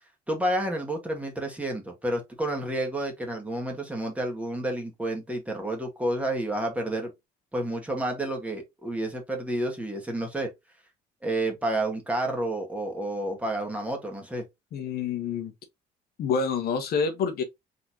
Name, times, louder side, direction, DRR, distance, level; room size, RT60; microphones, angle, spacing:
voice 1, 0.3-7.1 7.5-10.5 11.2-14.4, right 1 dB, 10° right, 1.8 m, -30 dB
voice 2, 14.7-15.5 16.2-17.4, left 5 dB, 65° left, 1.2 m, -27 dB
4.1 x 3.8 x 2.9 m
cardioid pair, 110°, 17 cm